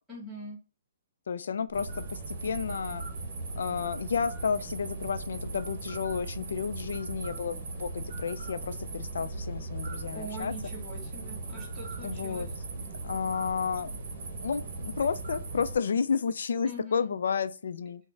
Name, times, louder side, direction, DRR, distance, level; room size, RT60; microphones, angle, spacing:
voice 1, 0.1-0.6 10.1-12.5 16.6-17.1, equal, ahead, 1.1 m, -42 dB
voice 2, 1.3-3.0 3.6-10.5 12.0-12.5 12.8-13.9 14.4-18.0, left 6 dB, 75° left, 0.3 m, -31 dB
sound 1, 1.7-15.8, right 3 dB, 50° right, 0.8 m, -38 dB
3.8 x 2.0 x 3.4 m
hypercardioid pair, 160°, 0 cm